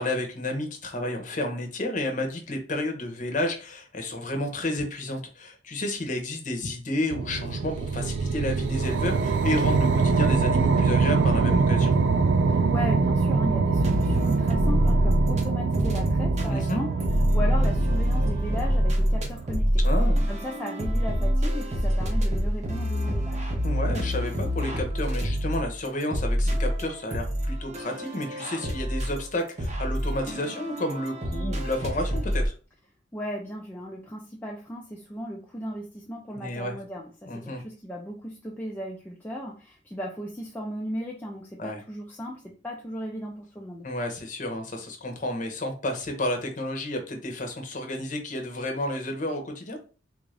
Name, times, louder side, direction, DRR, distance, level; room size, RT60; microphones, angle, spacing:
voice 1, 0.0-11.9 16.5-16.8 19.8-20.2 23.6-32.5 36.3-36.8 37.3-37.6 41.6-41.8 43.8-49.8, left 1 dB, 40° left, 3 dB, 0.8 m, -31 dB
sound 1, 7.1-19.6, right 4 dB, 70° right, 0.3 m, -24 dB
voice 2, 12.5-16.9 17.3-19.8 20.3-23.5 33.1-43.9, equal, 10° left, -2 dB, 0.4 m, -36 dB
sound 2, 13.7-15.4 15.7-32.5, equal, 35° right, 0.6 m, -26 dB
3.5 x 2.5 x 3.2 m, 0.37 s
head